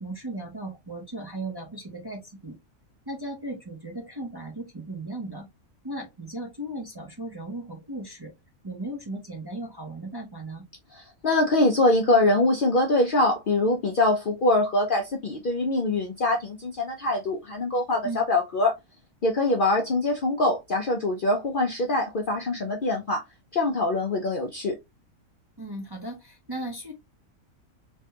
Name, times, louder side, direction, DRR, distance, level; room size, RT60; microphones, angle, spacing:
voice 1, 0.0-2.5 3.1-5.5 5.8-8.3 8.6-10.6 18.0-18.2 25.6-26.9, right 2 dB, 25° right, 0.6 m, -36 dB
voice 2, 10.9-18.7 19.2-23.2 23.5-24.8, left 2 dB, 55° left, 0.6 m, -23 dB
3.3 x 2.2 x 2.8 m
omnidirectional pair, 1.4 m